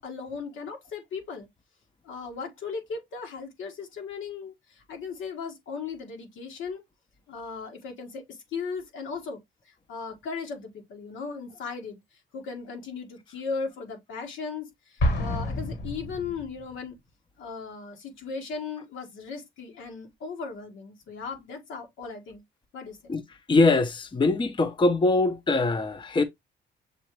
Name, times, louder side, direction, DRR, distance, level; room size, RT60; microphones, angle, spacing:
voice 1, 0.0-1.5 2.0-6.8 7.3-9.4 9.6-12.0 12.3-17.0 17.4-22.4 22.7-23.1, left 5 dB, 80° left, 1.7 m, -37 dB
Explosion, 15.0-16.8, left 1 dB, 60° left, 1.5 m, -28 dB
voice 2, 23.5-26.2, left 3 dB, 25° left, 0.7 m, -22 dB
6.6 x 2.5 x 3.0 m
cardioid pair, 90°, 20 cm